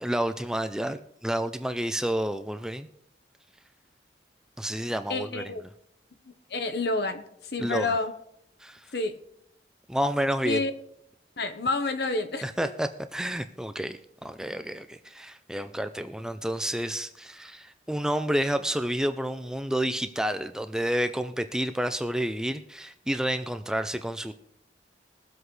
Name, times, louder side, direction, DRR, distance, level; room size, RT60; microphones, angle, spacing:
voice 1, 0.0-2.9 4.6-5.4 7.6-8.0 8.6-8.8 9.9-10.6 12.4-24.3, right 1 dB, 5° right, 9 dB, 0.4 m, -30 dB
voice 2, 5.1-5.6 6.5-8.1 8.9-9.2 10.4-10.7 11.4-12.7, left 3 dB, 65° left, 9 dB, 1.0 m, -29 dB
21.5 x 7.9 x 3.2 m, 0.75 s
head